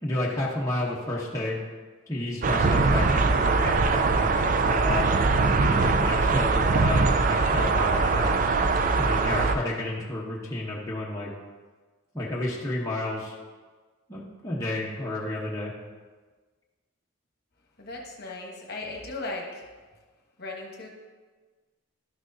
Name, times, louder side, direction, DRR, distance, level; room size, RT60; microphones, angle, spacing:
voice 1, 0.0-1.6 2.1-5.1 5.6-8.3 9.0-11.3 12.1-13.4 14.1-15.7, left 1 dB, 15° left, -6 dB, 0.9 m, -31 dB
sound 1, 2.4-9.5, right 3 dB, 40° right, 0.4 m, -22 dB
voice 2, 17.8-19.7 20.4-20.9, left 2 dB, 45° left, 0 dB, 1.1 m, -37 dB
12.0 x 6.1 x 2.7 m, 1.4 s
head